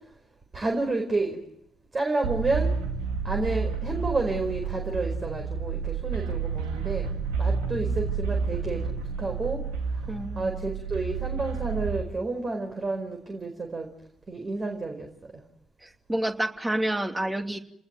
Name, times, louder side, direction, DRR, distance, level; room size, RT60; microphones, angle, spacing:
voice 1, 0.5-1.4 1.9-2.7 3.2-7.1 7.4-8.8 9.2-9.6 10.3-13.9 14.3-15.1, right 3 dB, 35° right, 4 dB, 4.8 m, -30 dB
sound 1, 2.2-12.0, right 5 dB, 75° right, 2.3 m, -30 dB
voice 2, 10.1-10.5 15.8-17.6, right 1 dB, 15° right, 6 dB, 2.8 m, -29 dB
30.0 x 19.5 x 9.4 m, 0.74 s
figure-of-eight pair, 45°, 0 cm